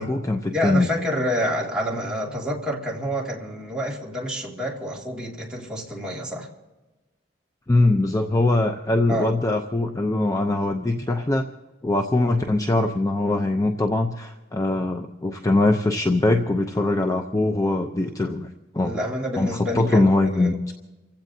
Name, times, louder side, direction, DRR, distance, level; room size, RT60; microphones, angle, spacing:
voice 1, 0.0-0.9 7.7-11.5 11.8-18.5 18.7-18.9 19.4-20.7, left 2 dB, 20° left, 4 dB, 0.6 m, -22 dB
voice 2, 0.5-6.5 9.1-9.3 18.8-20.5, equal, 5° right, -4 dB, 2.3 m, -28 dB
28.5 x 15.5 x 2.8 m, 1.2 s
head